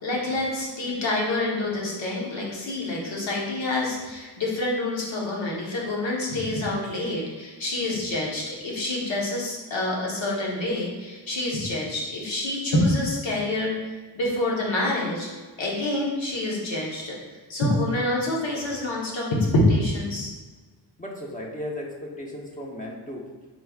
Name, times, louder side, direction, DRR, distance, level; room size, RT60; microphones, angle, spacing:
voice 1, 0.0-13.7 14.1-15.3 15.6-19.3 19.5-20.3, left 1 dB, 90° left, -3 dB, 1.3 m, -27 dB
voice 2, 21.0-23.3, left 1 dB, 20° left, -1 dB, 0.9 m, -35 dB
4.7 x 4.6 x 2.4 m, 1.3 s
cardioid pair, 85°, 45 cm